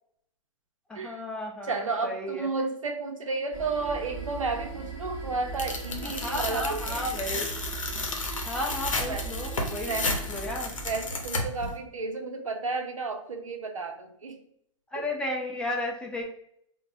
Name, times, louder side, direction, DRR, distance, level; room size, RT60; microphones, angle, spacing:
voice 1, 0.9-2.5 6.2-7.5 8.4-10.0 10.3-10.7 14.9-16.2, left 1 dB, 5° left, 0 dB, 0.5 m, -33 dB
voice 2, 1.6-7.3 9.1-9.3 9.9-10.1 10.8-14.4 15.0-15.1, right 3 dB, 90° right, 4 dB, 0.6 m, -32 dB
sound 1, 3.5-11.3, right 4 dB, 25° right, 1.0 m, -39 dB
Tearing, 5.6-11.7, left 3 dB, 85° left, 0.8 m, -33 dB
3.9 x 2.2 x 2.6 m, 0.72 s
hypercardioid pair, 115°, 16 cm